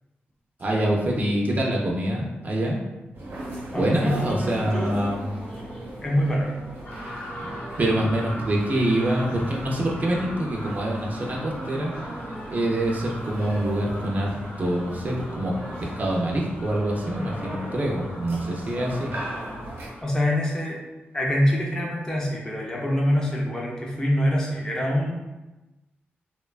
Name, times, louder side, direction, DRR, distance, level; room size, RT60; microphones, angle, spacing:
voice 1, 0.6-2.8 3.7-5.2 7.4-7.5 7.8-11.9 12.5-14.3 14.6-15.5 15.8-19.1, right 1 dB, 40° right, -2 dB, 0.4 m, -25 dB
sound 1, 3.1-19.9, right 1 dB, 90° right, 0.8 m, -38 dB
voice 2, 3.7-5.1 6.0-6.5 20.0-20.8 21.1-25.1, equal, 15° left, -3 dB, 0.5 m, -25 dB
sound 2, 6.8-20.0, equal, 80° left, 0.8 m, -41 dB
2.9 x 2.2 x 2.3 m, 1.1 s
wide cardioid pair, 115°, 4 cm